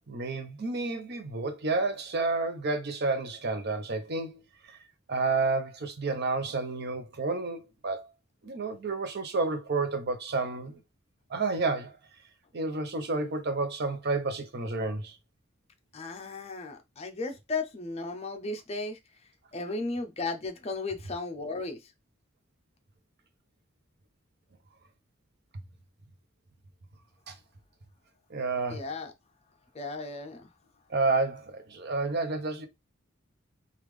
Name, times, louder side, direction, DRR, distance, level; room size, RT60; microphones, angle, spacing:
voice 1, 0.1-4.4 4.7-4.8 5.1-8.1 8.4-10.8 11.3-12.0 12.5-15.1 27.3-27.4 28.3-28.9 30.9-32.7, right 3 dB, 55° right, 0.6 m, -30 dB
voice 2, 15.9-19.0 19.5-21.8 28.7-29.1 29.7-30.5, left 3 dB, 30° left, 0.5 m, -35 dB
3.4 x 2.4 x 3.1 m
head